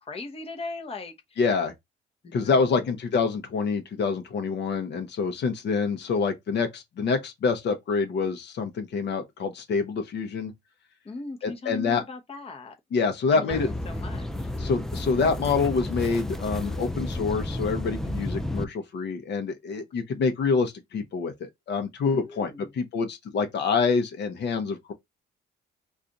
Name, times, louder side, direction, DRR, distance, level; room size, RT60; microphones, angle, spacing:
voice 1, 0.0-1.4 2.2-2.9 11.0-12.8 13.3-14.5 19.7-19.9 22.1-22.7, left 3 dB, 30° left, 0.8 m, -38 dB
voice 2, 1.4-1.7 2.3-10.5 11.4-12.0 12.9-13.7 14.6-22.5 22.8-24.9, left 5 dB, 60° left, 0.8 m, -26 dB
sound 1, 13.5-18.6, left 1 dB, ahead, 0.4 m, -32 dB
2.4 x 2.4 x 4.0 m
cardioid pair, 90°, 20 cm